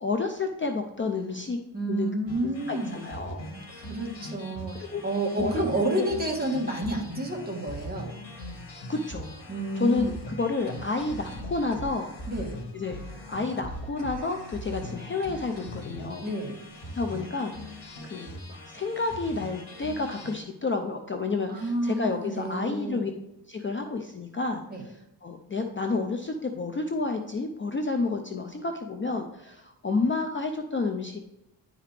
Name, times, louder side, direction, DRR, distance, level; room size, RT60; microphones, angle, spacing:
voice 1, 0.0-1.6 1.9-2.1 2.7-3.5 4.9-5.0 5.4-5.5 8.9-9.3 9.8-12.1 12.7-13.0 13.3-16.3 16.9-23.1 23.5-24.6 25.2-31.2, left 3 dB, 30° left, 4 dB, 0.5 m, -30 dB
voice 2, 1.7-3.0 3.7-8.2 9.5-10.0 12.3-12.6 16.2-16.6 21.5-23.1 24.7-24.8, right 1 dB, 20° right, -1 dB, 1.4 m, -30 dB
sound 1, 2.3-20.4, equal, 70° left, 1.8 m, -41 dB
10.0 x 4.9 x 3.3 m, 0.90 s
wide cardioid pair, 170°, 42 cm